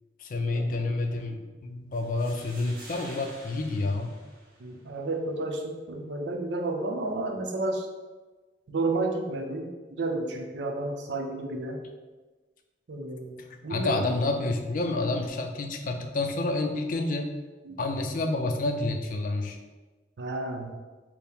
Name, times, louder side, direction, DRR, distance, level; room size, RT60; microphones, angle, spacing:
voice 1, 0.2-4.2 13.7-17.4 17.8-19.6, left 2 dB, 50° left, 4 dB, 0.4 m, -29 dB
sound 1, 1.9-4.9, right 1 dB, 55° right, 0.9 m, -48 dB
voice 2, 4.6-7.9 8.7-11.8 12.9-14.1 17.6-17.8 20.2-20.7, right 2 dB, 85° right, 3 dB, 0.5 m, -31 dB
4.4 x 2.0 x 3.5 m, 1.3 s
head